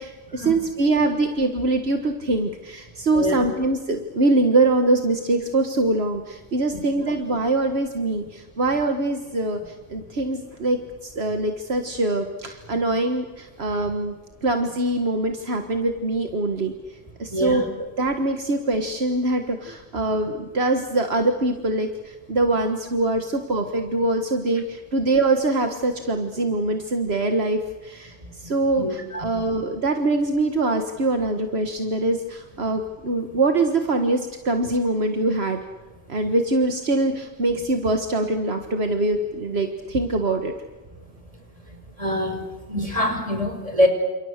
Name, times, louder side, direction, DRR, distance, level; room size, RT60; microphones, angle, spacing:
voice 1, 0.0-9.6 9.9-14.1 14.4-16.7 17.2-17.7 18.0-28.1 28.4-35.6 36.1-40.5, right 2 dB, 70° right, 5 dB, 1.8 m, -23 dB
voice 2, 17.3-17.7 28.2-28.3 28.7-29.4 42.0-42.4 42.7-43.9, left 1 dB, 35° right, 5 dB, 5.2 m, -24 dB
30.0 x 28.0 x 6.6 m, 1.2 s
omnidirectional pair, 1.1 m